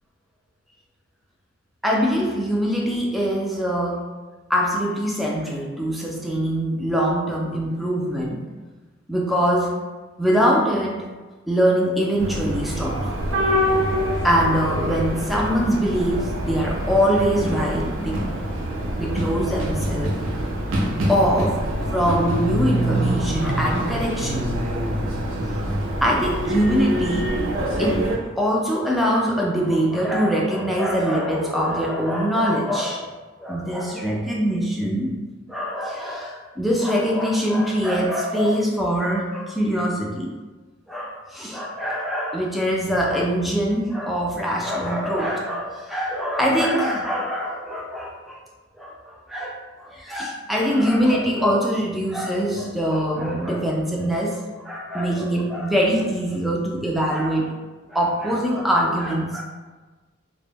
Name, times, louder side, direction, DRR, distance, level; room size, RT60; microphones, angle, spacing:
voice 1, 1.8-4.0 4.5-8.4 9.1-9.8 10.2-11.0 11.5-13.0 14.2-18.4 19.0-20.2 21.0-21.6 21.9-24.5 26.0-27.3 27.8-28.0 28.4-33.1 33.4-35.1 35.5-40.3 40.9-48.4 48.8-57.5 57.9-59.4, equal, ahead, -3 dB, 0.3 m, -23 dB
sound 1, 12.2-28.2, right 1 dB, 85° right, 0.4 m, -25 dB
2.1 x 2.0 x 3.3 m, 1.3 s
head